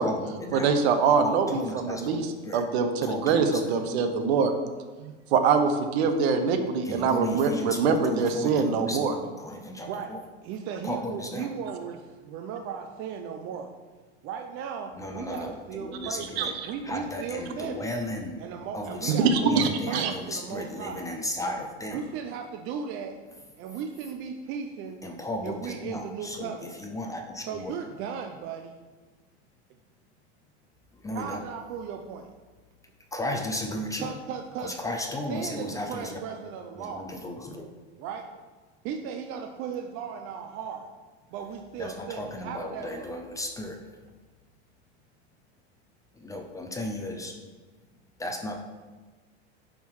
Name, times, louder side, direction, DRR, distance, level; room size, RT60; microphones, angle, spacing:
voice 1, 0.0-0.8 1.1-2.6 3.0-3.7 6.8-10.2 10.8-11.5 15.0-16.6 16.8-18.4 18.7-22.1 25.0-27.7 30.9-31.4 33.1-34.1 34.6-36.2 36.8-37.6 41.8-43.8 46.2-47.3 48.2-48.5, left 1 dB, 10° left, 3 dB, 0.5 m, -35 dB
voice 2, 0.5-2.2 2.5-4.5 5.0-9.1 16.4-16.5 19.1-20.1, right 5 dB, 65° right, 7 dB, 1.1 m, -24 dB
voice 3, 10.4-13.7 14.2-17.9 18.4-21.0 21.9-23.2 23.6-25.0 25.4-26.8 27.5-28.8 31.1-32.3 34.0-34.7 35.3-37.1 38.0-38.3 38.8-40.9 41.3-43.1, right 7 dB, 40° right, 4 dB, 0.6 m, -36 dB
10.5 x 3.7 x 4.7 m, 1.3 s
supercardioid pair, 140°, 34 cm